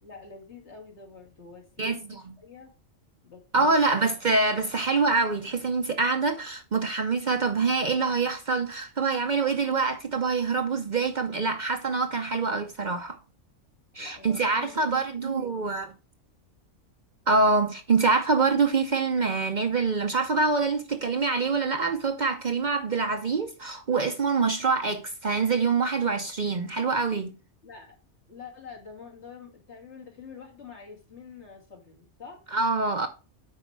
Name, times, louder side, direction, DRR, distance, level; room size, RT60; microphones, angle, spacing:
voice 1, 0.0-2.7 3.2-4.1 14.0-15.7 27.6-28.0 28.3-32.4, left 5 dB, 65° left, 2.6 m, -46 dB
voice 2, 3.5-13.2 13.9-15.9 17.3-27.3 32.5-33.1, right 4 dB, 45° right, 0.8 m, -25 dB
8.1 x 5.1 x 4.6 m
omnidirectional pair, 1.2 m